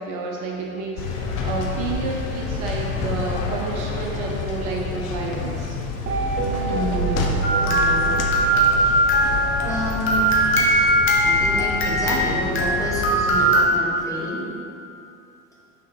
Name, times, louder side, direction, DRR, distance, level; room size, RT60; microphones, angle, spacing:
voice 1, 0.0-5.8, right 3 dB, 50° right, -1 dB, 0.9 m, -30 dB
sound 1, 1.0-13.6, left 4 dB, 50° left, 0.9 m, -29 dB
sound 2, 6.1-9.8, right 4 dB, 30° right, 0.5 m, -27 dB
voice 2, 6.7-7.3 7.7-8.2 8.7-9.0 9.6-10.6 11.2-14.4, left 1 dB, 10° left, -6 dB, 1.5 m, -29 dB
sound 3, 7.4-13.6, right 1 dB, 30° left, 1.2 m, -20 dB
6.4 x 3.7 x 5.5 m, 2.7 s
figure-of-eight pair, 70°, 42 cm